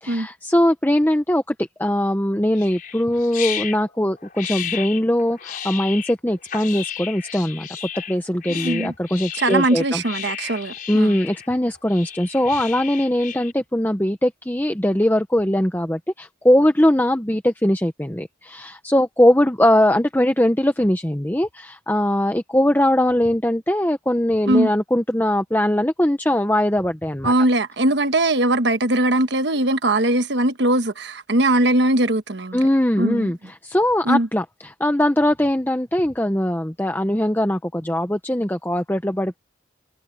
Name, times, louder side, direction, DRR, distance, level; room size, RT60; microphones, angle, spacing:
voice 1, 0.0-7.7 8.1-10.0 10.9-27.3 32.5-39.4, left 1 dB, 10° left, 0.9 m, -20 dB
sound 1, 2.5-13.5, left 9 dB, 45° left, 4.8 m, -33 dB
voice 2, 8.5-8.9 9.4-11.2 24.5-24.7 27.2-32.6 33.0-33.3 34.0-34.3, right 1 dB, 65° right, 1.3 m, -20 dB
head